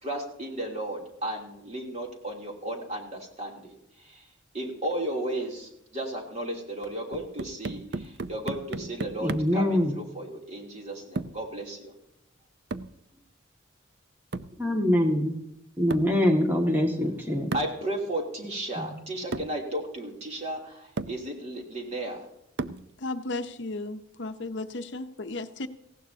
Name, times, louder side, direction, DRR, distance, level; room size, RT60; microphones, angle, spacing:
voice 1, 0.0-4.2 4.5-11.9 17.5-22.3, right 1 dB, 35° right, 0 dB, 3.1 m, -34 dB
sound 1, 7.1-9.7 11.2-11.5 12.7-13.0 14.3-14.6 15.9-16.2 17.5-17.8 18.8-18.9 19.3-19.6 20.5-20.6 21.0-21.2 22.6-22.9, right 3 dB, 55° right, 0.5 m, -35 dB
voice 2, 9.2-10.0 14.6-15.3 15.8-17.5 18.8-18.9, left 1 dB, 10° right, 1 dB, 1.9 m, -24 dB
voice 3, 23.0-25.7, left 2 dB, 60° left, 8 dB, 0.7 m, -34 dB
18.5 x 16.0 x 2.8 m, 0.82 s
head